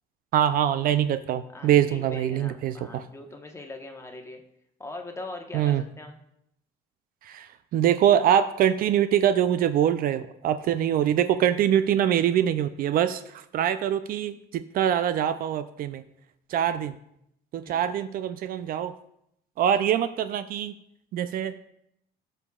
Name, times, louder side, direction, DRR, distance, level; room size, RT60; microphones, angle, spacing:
voice 1, 0.3-3.0 5.5-5.8 7.2-16.0 16.5-17.0 17.5-18.9 19.6-20.7 21.1-21.5, right 10 dB, 60° right, 11 dB, 0.4 m, -24 dB
voice 2, 1.5-4.4 4.8-6.2 17.6-17.9, left 2 dB, 15° left, 3 dB, 1.1 m, -41 dB
14.5 x 5.4 x 2.3 m, 0.75 s
cardioid pair, 110°, 17 cm